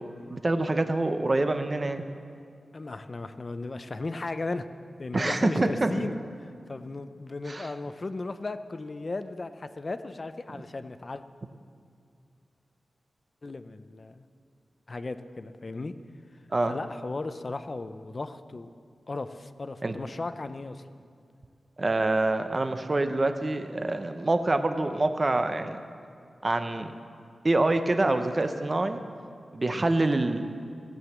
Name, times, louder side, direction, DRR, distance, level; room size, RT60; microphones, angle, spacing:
voice 1, 0.3-2.0 5.1-6.1 7.5-7.7 16.5-16.8 19.8-19.9 21.8-25.8 26.4-26.9 27.4-29.0 29.5-30.5, right 2 dB, 30° right, 8 dB, 0.6 m, -26 dB
voice 2, 2.7-4.7 5.0-6.2 6.7-11.2 13.4-14.3 14.9-15.9 16.7-18.7 19.1-20.9, left 3 dB, 35° left, 11 dB, 0.5 m, -36 dB
16.5 x 7.9 x 7.2 m, 2.3 s
wide cardioid pair, 125°, 0 cm